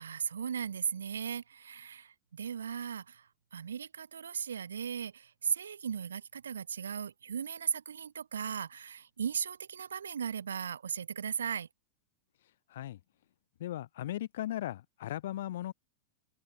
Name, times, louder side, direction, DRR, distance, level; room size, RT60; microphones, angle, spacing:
voice 1, 0.0-11.7, right 7 dB, 70° right, 0.5 m, -37 dB
voice 2, 12.7-13.0 13.6-15.7, left 13 dB, 60° left, 0.3 m, -37 dB
figure-of-eight pair, 90°, 0 cm